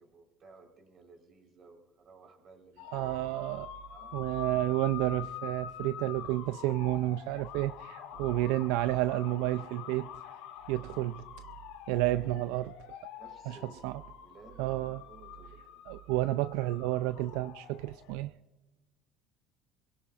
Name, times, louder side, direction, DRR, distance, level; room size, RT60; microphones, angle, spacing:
voice 1, 0.0-3.2 3.8-4.4 8.1-8.5 13.2-15.8, right 3 dB, 40° right, 4 dB, 4.1 m, -56 dB
sound 1, 2.8-18.2, left 10 dB, 80° left, 2.6 m, -46 dB
voice 2, 2.9-3.7 4.1-10.1 10.7-11.2 11.9-12.7 13.5-13.6 13.8-14.0 14.6-15.0 15.9-18.3, right 16 dB, 80° right, 13 dB, 0.4 m, -30 dB
24.5 x 17.5 x 2.5 m, 1.1 s
cardioid pair, 125°, 0 cm